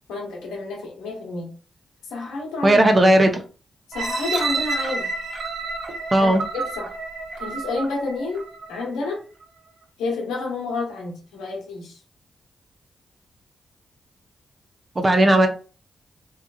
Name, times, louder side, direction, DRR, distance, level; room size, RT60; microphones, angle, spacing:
voice 1, 0.1-1.5 2.1-2.8 3.9-5.1 6.2-6.9 7.4-8.4 8.7-9.2 10.0-12.0, left 3 dB, 90° left, 0 dB, 0.9 m, -29 dB
voice 2, 2.6-3.4 6.1-6.4 15.0-15.5, right 1 dB, 35° right, 6 dB, 0.7 m, -16 dB
sound 1, 3.9-8.9 9.4-9.5, right 4 dB, 70° right, 0.7 m, -30 dB
3.1 x 2.4 x 2.3 m, 0.37 s
supercardioid pair, 45°, 0 cm